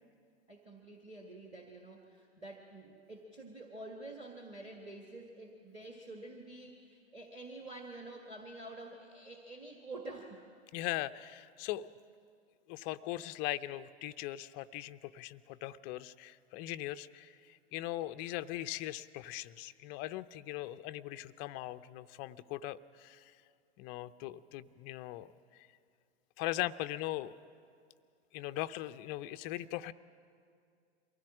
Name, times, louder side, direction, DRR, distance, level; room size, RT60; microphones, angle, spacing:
voice 1, 0.5-10.5, right 2 dB, 15° right, 2 dB, 1.6 m, -48 dB
voice 2, 10.7-11.9 12.7-23.3 23.8-25.3 26.4-27.3 28.3-29.9, left 15 dB, 30° left, 12 dB, 0.4 m, -40 dB
23.5 x 16.0 x 7.3 m, 2.3 s
figure-of-eight pair, 95°, 32 cm